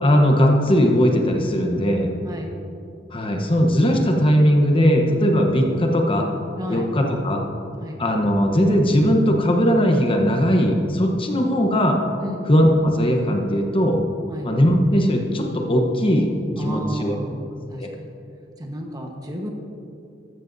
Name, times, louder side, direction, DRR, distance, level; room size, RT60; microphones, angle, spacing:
voice 1, 0.0-2.1 3.1-6.3 6.7-7.4 8.0-12.0 12.5-14.0 14.4-16.3 16.6-17.1 17.8-17.9, equal, 30° left, 2 dB, 1.0 m, -19 dB
voice 2, 6.6-6.9 7.8-8.0 12.2-12.5 14.3-14.5 16.6-17.4 17.7-18.1 18.6-19.5, equal, 20° right, 1 dB, 1.2 m, -32 dB
14.0 x 14.0 x 2.7 m, 2.7 s
head